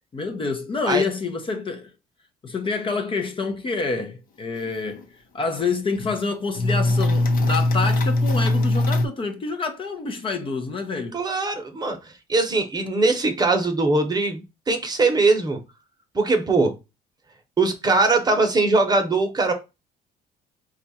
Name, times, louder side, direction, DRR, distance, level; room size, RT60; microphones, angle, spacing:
voice 1, 0.1-1.9 2.4-5.0 5.3-11.2, left 4 dB, 30° left, 0.7 m, -27 dB
sound 1, 4.6-4.7 5.0-5.1 5.6-6.2 6.5-9.1, left 2 dB, 55° left, 0.9 m, -21 dB
voice 2, 11.1-15.6 16.1-16.7 17.6-19.5, right 3 dB, 25° right, 0.9 m, -21 dB
4.4 x 2.4 x 4.1 m
cardioid pair, 110°, 17 cm